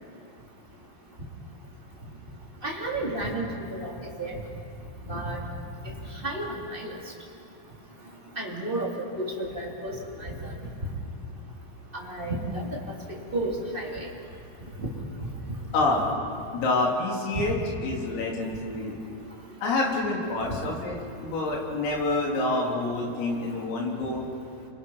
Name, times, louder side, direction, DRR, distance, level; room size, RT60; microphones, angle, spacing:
voice 1, 2.6-3.9 4.2-4.4 5.1-5.4 6.2-7.0 8.4-8.9 9.2-10.5 11.9-12.7 13.1-14.1 17.3-17.5, right 1 dB, 15° right, -3 dB, 2.4 m, -32 dB
voice 2, 15.7-16.1 16.5-17.6 17.8-19.0 19.6-24.2, left 2 dB, 90° left, -1 dB, 6.3 m, -27 dB
29.5 x 25.0 x 5.7 m, 2.5 s
omnidirectional pair, 5.8 m